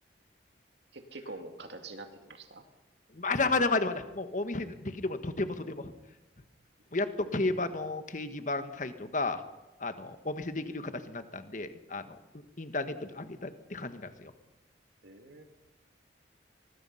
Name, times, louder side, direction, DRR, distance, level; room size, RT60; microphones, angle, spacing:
voice 1, 0.9-2.6 15.0-15.4, right 2 dB, 70° right, 6 dB, 2.4 m, -45 dB
voice 2, 3.1-5.9 6.9-9.4 9.8-12.0 12.6-14.3, left 3 dB, 45° left, 9 dB, 1.4 m, -32 dB
24.5 x 21.0 x 5.7 m, 1.0 s
head